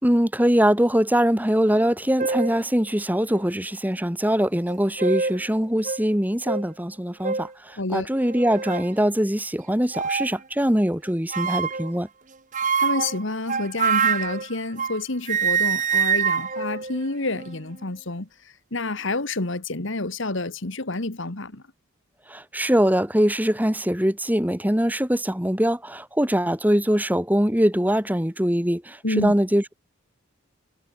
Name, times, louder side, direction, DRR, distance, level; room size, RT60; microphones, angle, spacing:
voice 1, 0.0-12.1 22.3-29.7, equal, 10° right, 1.8 m, -22 dB
sound 1, 1.8-1.9 2.2-2.6 3.3-3.4 4.7-5.4 5.8-6.0 6.4-6.6 7.2-7.5 8.2-8.9 9.9-10.4 11.3-11.9 12.5-15.0 15.3-17.6, right 6 dB, 35° right, 1.3 m, -25 dB
voice 2, 7.8-8.1 12.8-21.6 29.0-29.3, left 2 dB, 55° left, 1.7 m, -28 dB
head